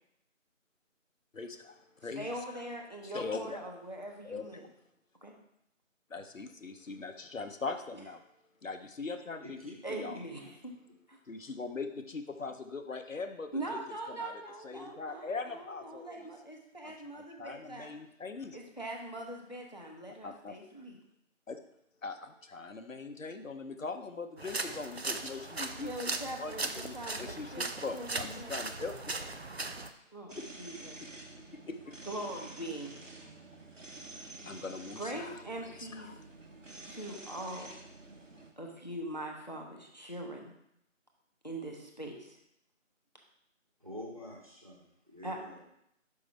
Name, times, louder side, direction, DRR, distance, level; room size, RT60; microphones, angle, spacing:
voice 1, 1.3-2.3 3.1-3.6 4.2-4.5 6.1-8.2 8.6-10.2 11.3-13.8 14.1-14.3 14.6-16.2 16.8-18.6 20.2-20.6 21.5-21.6 22.0-25.9 26.2-29.2 30.4-30.5 31.7-32.0 34.5-35.4 35.8-36.2, left 4 dB, 75° left, 7 dB, 0.8 m, -41 dB
voice 2, 2.2-4.7 5.2-5.3 9.8-10.7 11.1-11.2 13.5-17.9 18.5-21.0 25.8-28.5 30.1-31.0 32.0-33.0 35.0-36.1 36.8-37.8 38.6-40.5 41.4-42.4 45.2-45.4, right 1 dB, 35° left, 1 dB, 0.8 m, -42 dB
voice 3, 9.4-10.0 43.8-45.6, left 1 dB, 25° right, -4 dB, 1.2 m, -47 dB
sound 1, 24.4-29.9, right 3 dB, 55° right, 0.5 m, -38 dB
sound 2, 30.3-38.5, right 2 dB, 70° right, 1.2 m, -49 dB
5.4 x 5.4 x 4.5 m, 0.77 s
figure-of-eight pair, 170°, 39 cm